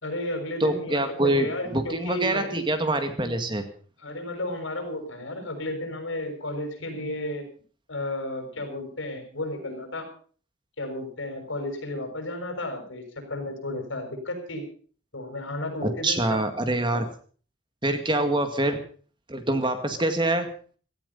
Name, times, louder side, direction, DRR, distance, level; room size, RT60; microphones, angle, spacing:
voice 1, 0.0-2.6 4.0-7.4 7.9-10.1 10.8-14.6 15.1-16.4 16.9-17.0 18.2-18.4, left 1 dB, 85° left, 5 dB, 6.3 m, -33 dB
voice 2, 0.6-3.7 16.0-17.1 17.8-18.8 19.3-20.5, right 1 dB, 25° right, 7 dB, 2.0 m, -25 dB
17.0 x 14.0 x 5.5 m, 0.43 s
head